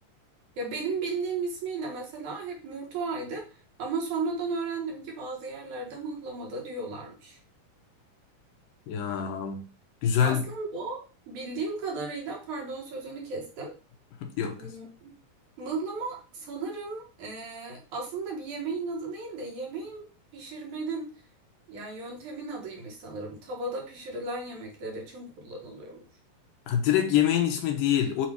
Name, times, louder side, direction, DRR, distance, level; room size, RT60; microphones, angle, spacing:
voice 1, 0.6-7.4 10.2-13.7 14.6-15.1 15.6-21.1 21.7-26.0, right 3 dB, 60° right, 2.6 m, -35 dB
voice 2, 8.9-9.7 10.0-10.5 14.2-14.8 26.7-28.3, left 9 dB, 75° left, 2.6 m, -25 dB
7.7 x 3.2 x 4.6 m
omnidirectional pair, 4.2 m